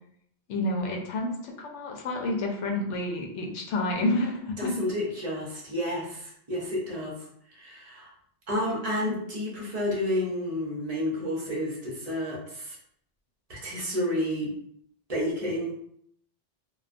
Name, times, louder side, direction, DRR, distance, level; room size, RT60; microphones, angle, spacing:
voice 1, 0.5-4.7 9.0-9.1, left 1 dB, 90° left, 0 dB, 0.9 m, -29 dB
voice 2, 4.6-7.1 7.5-8.1 8.5-12.8 13.5-14.5 15.1-15.7, left 1 dB, 40° right, -3 dB, 0.7 m, -30 dB
2.3 x 2.3 x 2.4 m, 0.68 s
omnidirectional pair, 1.2 m